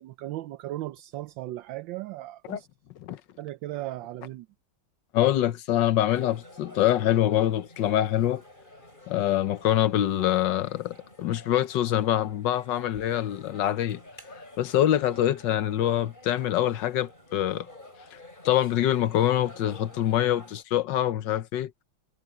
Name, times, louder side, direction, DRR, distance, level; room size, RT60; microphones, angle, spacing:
voice 1, 0.0-2.7 3.4-4.5, right 16 dB, 80° right, 1.3 m, -36 dB
voice 2, 5.1-8.4 9.1-14.0 14.6-17.7 18.1-18.2 18.4-21.7, left 12 dB, 70° left, 1.4 m, -25 dB
sound 1, 6.1-20.6, left 1 dB, 25° left, 7.6 m, -49 dB
omnidirectional pair, 2.1 m